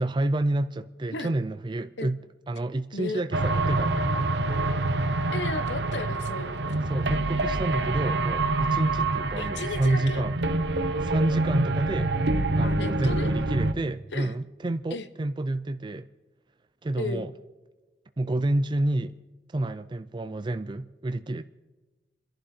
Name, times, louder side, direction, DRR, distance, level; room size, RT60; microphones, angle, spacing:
voice 1, 0.0-2.2 2.5-4.0 6.9-10.4 11.0-12.1 12.6-16.1 16.8-17.3 18.2-19.2 19.5-21.4, right 2 dB, 25° right, 0.4 m, -29 dB
voice 2, 2.9-3.2 5.3-6.8 9.0-9.1 9.4-10.2 12.6-13.3 14.1-14.3 14.9-15.1 17.0-17.2, left 3 dB, 90° left, 1.0 m, -34 dB
sound 1, 3.3-13.7, right 2 dB, 75° right, 0.9 m, -26 dB
29.5 x 11.0 x 4.4 m
head